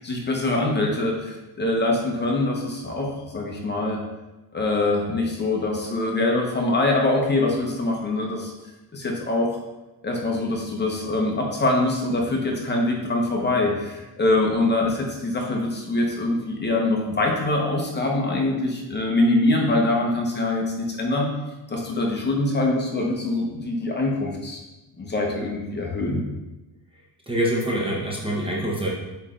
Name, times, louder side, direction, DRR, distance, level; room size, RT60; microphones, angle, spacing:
voice 1, 0.0-4.0 4.5-8.5 8.9-9.5 10.0-21.3 21.7-24.6 25.0-26.2, left 2 dB, 25° left, -1 dB, 0.9 m, -24 dB
voice 2, 27.3-28.9, equal, 15° right, -4 dB, 0.8 m, -25 dB
8.1 x 3.3 x 3.8 m, 1.1 s
cardioid pair, 165°, 41 cm